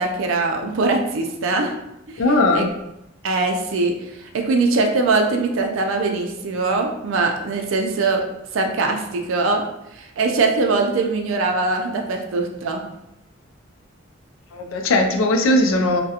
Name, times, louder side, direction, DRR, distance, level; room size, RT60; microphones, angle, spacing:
voice 1, 0.0-1.7 2.5-2.6 3.2-8.2 8.5-9.6 9.9-12.9, right 3 dB, 75° right, 2 dB, 0.4 m, -22 dB
voice 2, 2.2-2.7 14.5-16.0, left 1 dB, 75° left, 3 dB, 0.4 m, -18 dB
2.3 x 2.1 x 2.8 m, 0.87 s
head